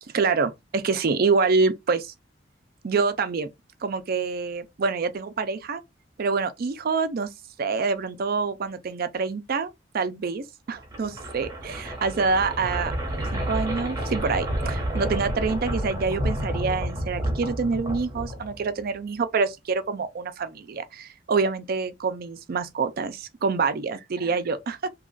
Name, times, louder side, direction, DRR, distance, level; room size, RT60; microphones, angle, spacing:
voice 1, 0.1-2.1 2.8-3.5 3.8-5.8 6.2-7.3 7.6-12.9 13.3-24.9, right 4 dB, 55° right, 0.4 m, -26 dB
sound 1, 10.8-18.8, equal, 20° right, 1.0 m, -30 dB
2.9 x 2.4 x 3.7 m
head